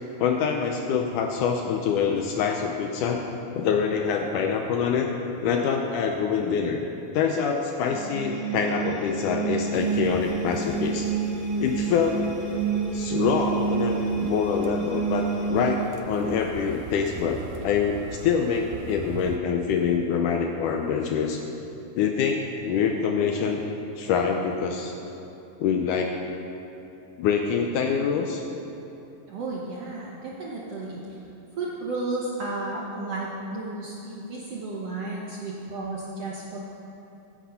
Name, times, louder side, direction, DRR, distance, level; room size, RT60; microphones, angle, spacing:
voice 1, 0.2-3.2 3.5-5.1 5.4-6.8 7.1-11.1 11.6-12.2 12.9-21.4 22.0-23.6 24.0-24.9 25.6-26.2 27.2-28.4, left 6 dB, 75° left, 3 dB, 2.0 m, -25 dB
sound 1, 7.9-15.7, right 6 dB, 35° right, 1.7 m, -29 dB
sound 2, 9.7-19.4, right 7 dB, 80° right, 2.4 m, -42 dB
voice 2, 29.3-31.0 31.6-36.6, right 2 dB, 65° right, -4 dB, 1.6 m, -33 dB
15.0 x 8.4 x 5.7 m, 2.9 s
omnidirectional pair, 4.2 m